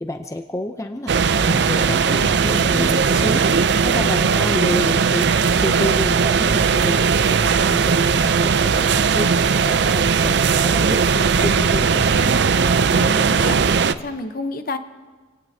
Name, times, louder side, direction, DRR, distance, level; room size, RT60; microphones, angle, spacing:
voice 1, 0.0-1.1 1.5-5.3 5.6-7.0 7.2-9.3 9.6-12.3, left 1 dB, 15° left, 6 dB, 0.6 m, -29 dB
sound 1, 1.1-13.9, right 5 dB, 60° right, 0.5 m, -18 dB
voice 2, 12.9-13.6 13.9-14.8, left 3 dB, 45° left, 8 dB, 0.9 m, -30 dB
27.5 x 18.0 x 2.8 m, 1.3 s
head